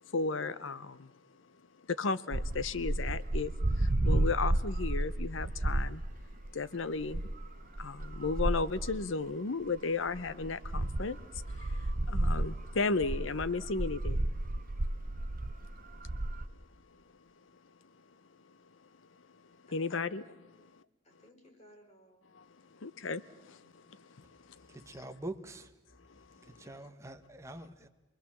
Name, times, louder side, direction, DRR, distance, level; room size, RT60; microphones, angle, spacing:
voice 1, 0.1-1.1 1.9-6.0 6.5-7.3 7.8-14.3 19.7-20.5 22.3-22.4 22.7-24.8 26.1-26.7, left 4 dB, 70° left, 17 dB, 0.8 m, -35 dB
sound 1, 2.3-6.5 7.0-9.0 9.8-9.9 10.1-16.5, right 1 dB, 45° right, 0.9 m, -32 dB
voice 2, 19.7-20.3 20.6-20.7 21.0-22.2 23.6-23.7, equal, 35° left, 4 dB, 4.1 m, -61 dB
voice 3, 24.7-25.7 26.4-27.9, right 1 dB, 15° right, 5 dB, 1.1 m, -44 dB
28.0 x 21.0 x 7.3 m, 1.0 s
head